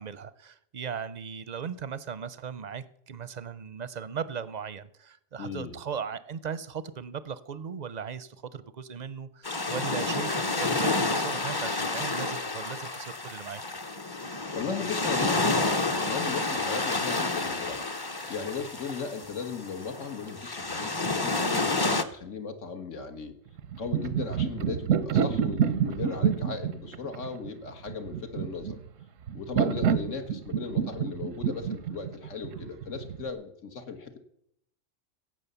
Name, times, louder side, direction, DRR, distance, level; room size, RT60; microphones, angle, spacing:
voice 1, 0.0-13.6, right 7 dB, 45° right, 16 dB, 0.6 m, -37 dB
voice 2, 5.4-5.7 14.1-14.2 14.5-17.8 18.3-23.3 23.8-28.8 29.3-34.2, left 5 dB, 80° left, 7 dB, 1.8 m, -37 dB
sound 1, 9.4-22.0, left 3 dB, 25° left, 0.6 m, -30 dB
sound 2, 23.6-33.3, right 8 dB, 90° right, 1.1 m, -28 dB
16.5 x 7.6 x 6.9 m, 0.74 s
omnidirectional pair, 1.3 m